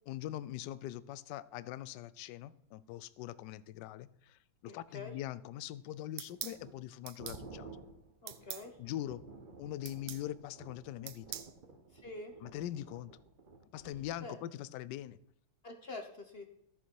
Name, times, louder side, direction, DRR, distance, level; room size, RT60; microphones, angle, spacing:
voice 1, 0.1-7.7 8.8-9.2 9.6-11.4 12.4-13.1 13.7-15.2, left 13 dB, 75° left, 18 dB, 1.0 m, -42 dB
voice 2, 4.6-5.1 8.2-8.8 11.9-12.3 14.2-14.4 15.6-16.5, left 2 dB, 40° left, 6 dB, 0.9 m, -46 dB
sound 1, 6.2-14.2, right 3 dB, 35° right, 0.9 m, -53 dB
sound 2, 6.2-6.6 7.1-7.4 8.3-8.7 9.8-10.2 11.1-11.5, right 11 dB, 75° right, 1.5 m, -43 dB
13.5 x 7.5 x 4.6 m, 0.74 s
omnidirectional pair, 2.2 m